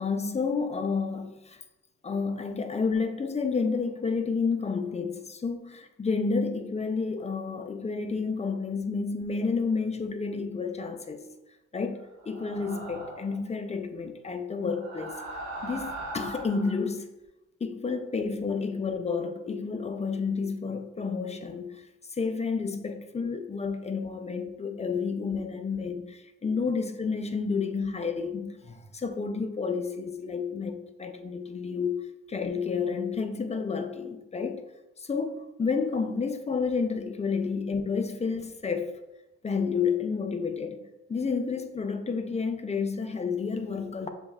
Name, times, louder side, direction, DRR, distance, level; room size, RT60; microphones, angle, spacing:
voice 1, 0.0-1.6 2.0-11.3 11.7-15.2 15.6-17.1 17.6-32.0 32.3-34.6 35.0-38.9 39.4-40.8 41.1-44.1, left 5 dB, 20° left, 0.5 m, -30 dB
sound 1, 12.2-13.4 14.6-16.8, right 2 dB, 65° right, 1.3 m, -39 dB
6.9 x 3.1 x 2.3 m
cardioid pair, 90°, 30 cm